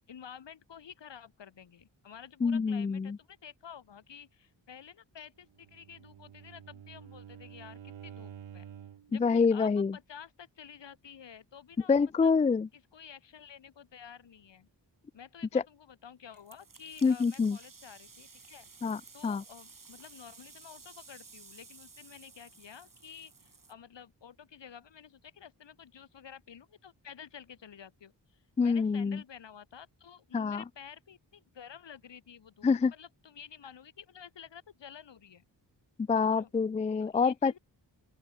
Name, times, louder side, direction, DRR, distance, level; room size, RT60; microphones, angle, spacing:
voice 1, 0.1-8.7 9.1-12.3 12.7-14.7 15.1-18.7 19.1-35.4 36.1-36.5 37.0-37.6, left 8 dB, 70° left, 2.4 m, -51 dB
voice 2, 2.4-3.2 9.2-9.9 11.9-12.7 17.0-17.6 18.8-19.4 28.6-29.2 30.3-30.6 32.6-32.9 36.1-37.6, left 5 dB, 20° left, 0.3 m, -26 dB
Bowed string instrument, 5.5-9.2, right 9 dB, 85° right, 4.8 m, -49 dB
sound 1, 16.3-23.7, right 4 dB, 45° right, 4.0 m, -54 dB
open air
cardioid pair, 45°, 45 cm